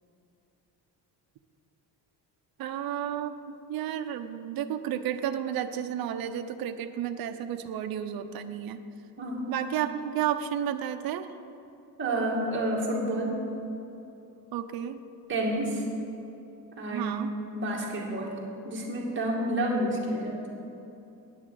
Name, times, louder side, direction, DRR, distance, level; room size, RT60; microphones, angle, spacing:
voice 1, 2.6-8.8 9.5-11.3 14.5-15.0 16.9-17.3, right 10 dB, 65° right, 8 dB, 0.7 m, -32 dB
voice 2, 9.2-9.5 12.0-13.4 15.3-15.8 16.7-17.1 17.5-18.4 18.6-20.4, right 1 dB, 30° right, -3 dB, 2.3 m, -29 dB
9.4 x 7.3 x 8.2 m, 2.8 s
cardioid pair, 150°, 38 cm